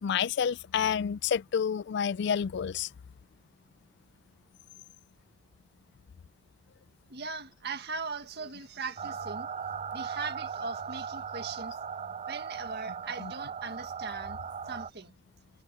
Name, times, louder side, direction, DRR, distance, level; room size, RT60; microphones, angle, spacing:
voice 1, 0.0-2.9 13.2-13.3, left 7 dB, 55° left, 0.3 m, -29 dB
voice 2, 7.1-9.5 9.9-11.7 12.3-14.4 14.6-15.1, right 4 dB, 55° right, 1.8 m, -39 dB
sound 1, 9.0-14.9, right 6 dB, 30° right, 0.4 m, -38 dB
head